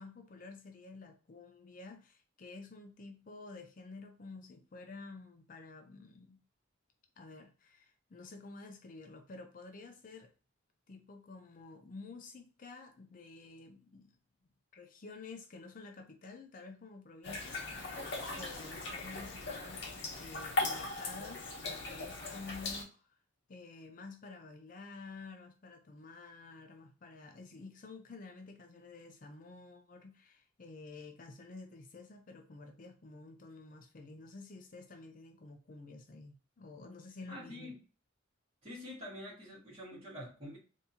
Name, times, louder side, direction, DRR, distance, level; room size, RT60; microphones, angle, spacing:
voice 1, 0.0-6.4 7.2-10.3 10.9-14.2 14.7-17.6 18.3-23.2 23.5-37.7, left 3 dB, 40° left, 0.4 m, -50 dB
sound 1, 17.2-22.8, left 2 dB, 60° left, 0.8 m, -39 dB
voice 2, 37.3-37.8 38.6-40.6, left 1 dB, 30° right, 1.8 m, -46 dB
3.5 x 2.7 x 2.8 m
head